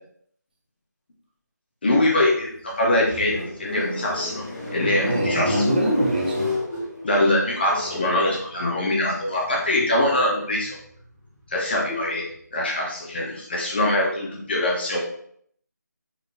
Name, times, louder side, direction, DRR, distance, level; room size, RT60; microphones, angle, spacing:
voice 1, 1.8-4.5 4.7-5.6 7.0-10.8 11.5-12.2 12.5-15.0, left 1 dB, 35° left, -3 dB, 1.6 m, -23 dB
sound 1, 2.3-12.5, left 2 dB, 15° left, 1.5 m, -34 dB
voice 2, 4.8-6.6, right 1 dB, 30° right, -2 dB, 1.1 m, -23 dB
5.0 x 4.7 x 4.3 m, 0.65 s
figure-of-eight pair, 160°, 10 cm